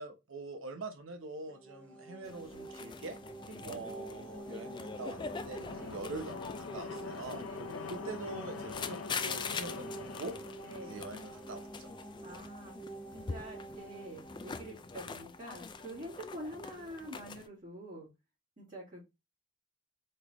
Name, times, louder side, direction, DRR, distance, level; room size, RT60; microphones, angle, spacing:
voice 1, 0.0-3.2 3.6-7.4 7.9-10.3 10.8-11.9, right 3 dB, 80° right, 0.9 m, -44 dB
sound 1, 1.4-16.1, right 2 dB, 5° left, 0.7 m, -48 dB
sound 2, 2.2-17.5, left 5 dB, 20° left, 0.3 m, -44 dB
voice 2, 3.4-3.9 5.8-6.1 7.5-7.9 10.6-11.0 12.2-12.7 13.1-18.1 18.6-19.0, right 1 dB, 40° right, 2.1 m, -46 dB
sound 3, 4.0-11.8, left 4 dB, 90° left, 0.7 m, -45 dB
4.4 x 3.5 x 3.0 m
head